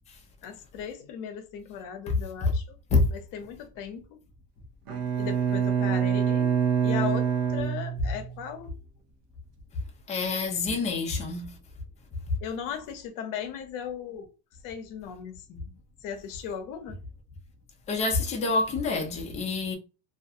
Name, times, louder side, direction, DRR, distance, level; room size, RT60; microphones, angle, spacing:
voice 1, 0.4-2.8 3.1-4.2 5.1-6.5 6.8-8.7 12.4-14.3 14.6-17.0, left 8 dB, 50° left, 0.7 m, -37 dB
Bowed string instrument, 4.9-8.4, right 7 dB, 60° right, 0.7 m, -26 dB
voice 2, 10.1-11.5 17.9-19.8, left 3 dB, 20° left, 0.4 m, -26 dB
2.4 x 2.1 x 2.7 m
cardioid pair, 155°, 41 cm